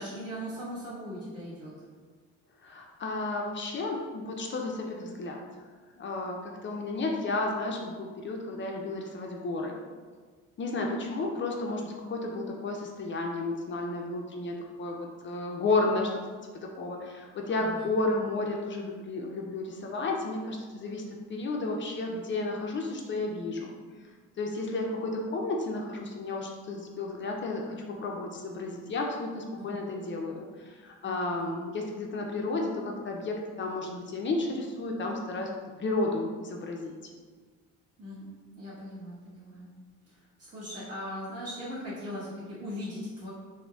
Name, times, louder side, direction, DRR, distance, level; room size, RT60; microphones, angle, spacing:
voice 1, 0.0-1.7 17.6-17.9 29.6-30.0 31.0-31.4 38.0-39.7 40.5-43.3, equal, 50° right, -8 dB, 1.5 m, -39 dB
voice 2, 2.6-5.4 6.0-9.8 10.6-16.2 16.6-21.0 21.3-23.7 24.4-35.5 35.8-36.9, left 2 dB, 40° left, 1 dB, 0.4 m, -32 dB
3.8 x 2.1 x 2.3 m, 1.5 s
cardioid pair, 90°, 30 cm